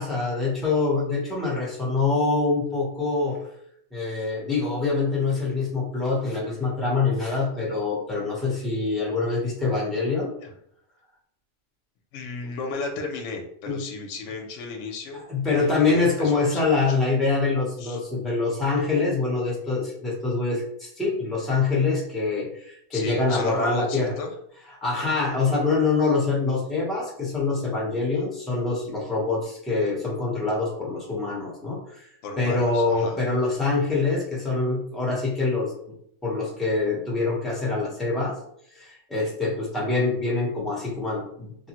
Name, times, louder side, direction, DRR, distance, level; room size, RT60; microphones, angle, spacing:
voice 1, 0.0-3.4 3.9-10.3 13.7-13.8 15.3-24.1 24.8-32.1 32.4-35.7 36.2-38.4 38.7-41.7, left 3 dB, ahead, -4 dB, 0.6 m, -25 dB
voice 2, 12.1-17.0 17.8-18.0 22.9-24.3 32.2-33.2, left 3 dB, 70° left, 2 dB, 0.9 m, -35 dB
3.3 x 2.0 x 2.9 m, 0.69 s
omnidirectional pair, 1.3 m